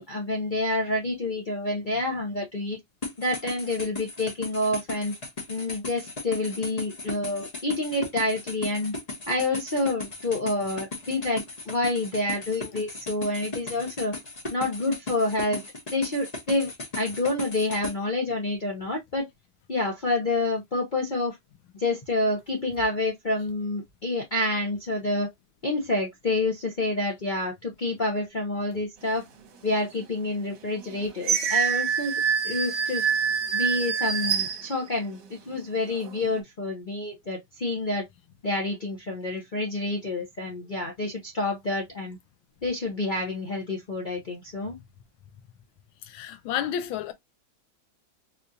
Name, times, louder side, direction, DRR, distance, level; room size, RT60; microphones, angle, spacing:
voice 1, 0.0-2.8 3.2-5.1 5.5-8.9 9.3-14.2 14.5-15.6 15.9-19.3 19.7-21.4 21.7-25.3 25.6-29.3 29.6-33.1 33.5-35.2 35.5-38.1 38.4-42.2 42.6-44.8, left 2 dB, 70° left, 0.4 m, -28 dB
sound 1, 3.0-17.9, left 2 dB, 30° left, 0.8 m, -37 dB
sound 2, 29.8-29.9 30.5-35.3 35.8-36.4, right 7 dB, 65° right, 1.4 m, -27 dB
voice 2, 46.1-47.1, left 9 dB, 90° left, 1.5 m, -30 dB
4.1 x 2.4 x 2.6 m
omnidirectional pair, 2.1 m